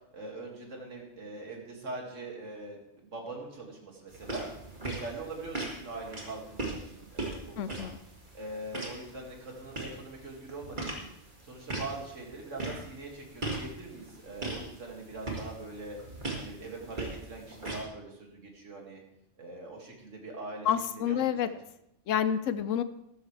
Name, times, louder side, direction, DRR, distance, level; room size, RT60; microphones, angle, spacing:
voice 1, 0.1-4.5 4.8-7.9 8.3-11.1 11.4-16.0 16.4-19.0 19.4-21.6, right 2 dB, 80° right, 0 dB, 2.7 m, -42 dB
sound 1, 4.1-17.8, right 2 dB, 40° right, 2.3 m, -40 dB
voice 2, 7.6-8.0 20.7-21.5 22.1-22.8, left 9 dB, 85° left, 12 dB, 1.0 m, -28 dB
13.5 x 13.0 x 3.4 m, 0.79 s
omnidirectional pair, 1.3 m